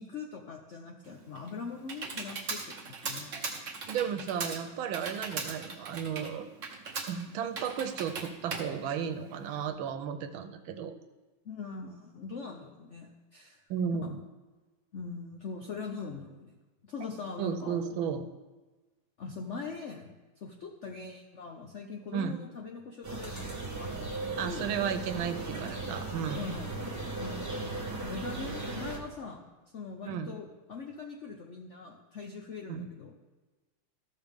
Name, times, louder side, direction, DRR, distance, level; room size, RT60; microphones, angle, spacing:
voice 1, 0.0-3.6 11.4-13.6 14.0-14.2 14.9-16.6 16.8-17.9 19.2-24.7 26.4-26.9 27.2-33.1, left 4 dB, 70° left, 2 dB, 0.6 m, -42 dB
Computer keyboard, 1.1-9.7, right 4 dB, 45° right, 1.2 m, -39 dB
voice 2, 3.9-6.5 7.1-10.9 13.7-14.2 17.4-18.3 22.1-22.4 24.4-26.5 30.1-30.3 32.7-32.9, right 7 dB, 85° right, 9 dB, 1.5 m, -34 dB
sound 1, 23.0-29.0, right 2 dB, 10° right, 0.9 m, -37 dB
14.0 x 6.4 x 3.5 m, 1.2 s
omnidirectional pair, 2.1 m